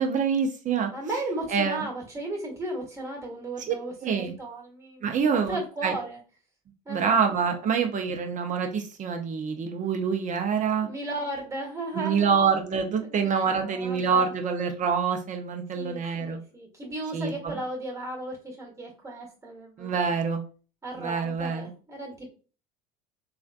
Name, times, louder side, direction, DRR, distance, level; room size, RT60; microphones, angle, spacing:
voice 1, 0.0-0.9 1.5-1.9 3.7-3.8 4.0-4.3 5.0-5.6 5.8-5.9 6.9-10.9 11.9-16.4 17.1-17.6 19.8-20.4 20.9-21.7, right 6 dB, 35° right, 5 dB, 0.7 m, -26 dB
voice 2, 0.9-6.2 6.8-7.2 10.8-12.3 13.1-14.3 15.7-20.2 20.8-22.3, right 2 dB, 15° right, -2 dB, 1.3 m, -35 dB
3.2 x 2.4 x 2.5 m, 0.37 s
hypercardioid pair, 75°, 21 cm